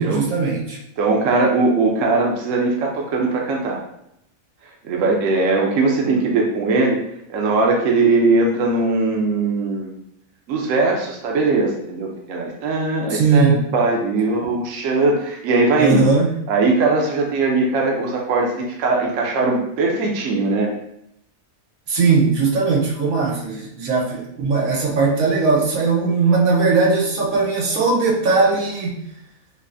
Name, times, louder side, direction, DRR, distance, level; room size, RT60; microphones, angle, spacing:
voice 1, 0.0-0.8 13.1-13.7 15.8-16.3 21.9-29.0, right 4 dB, 90° right, -3 dB, 1.3 m, -19 dB
voice 2, 1.0-3.8 4.8-7.0 7.3-9.9 10.5-16.0 16.5-20.7, right 3 dB, 70° right, 0 dB, 1.0 m, -20 dB
5.3 x 2.0 x 2.6 m, 0.78 s
omnidirectional pair, 1.4 m